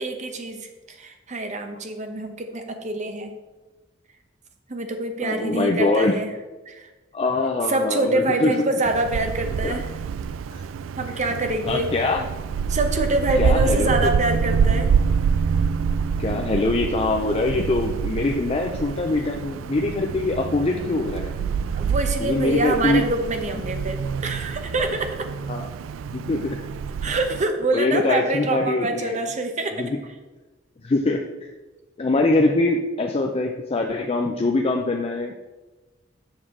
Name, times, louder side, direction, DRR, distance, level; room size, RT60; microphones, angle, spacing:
voice 1, 0.0-3.3 4.7-6.3 6.7-6.9 7.7-9.9 11.0-11.9 12.7-14.9 21.7-25.3 27.0-29.9, right 2 dB, 40° right, 6 dB, 0.8 m, -25 dB
voice 2, 5.2-6.1 7.1-8.5 9.6-9.7 10.5-10.6 11.7-12.2 13.4-14.1 16.2-21.3 22.2-23.0 25.5-25.7 26.1-26.6 27.1-27.2 27.7-29.2 29.8-30.0 30.8-31.3 32.0-35.3, left 2 dB, 30° left, 2 dB, 0.4 m, -23 dB
Wind, 8.8-27.4, right 6 dB, 85° right, 0.3 m, -26 dB
7.2 x 6.3 x 3.7 m, 1.2 s
head